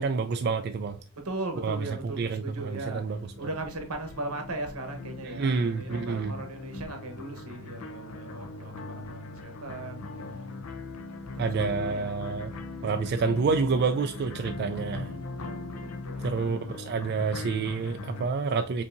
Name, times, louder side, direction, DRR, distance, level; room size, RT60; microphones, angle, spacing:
voice 1, 0.0-1.0 1.6-3.5 5.2-6.3 11.4-12.5 12.8-15.1 16.2-18.8, right 4 dB, 50° right, 0.3 m, -28 dB
voice 2, 1.2-3.0 3.4-10.0 11.3-12.4 14.9-16.3, right 2 dB, 85° right, 1.0 m, -38 dB
sound 1, 2.0-18.3, left 3 dB, 75° left, 0.5 m, -40 dB
5.3 x 2.7 x 2.5 m
head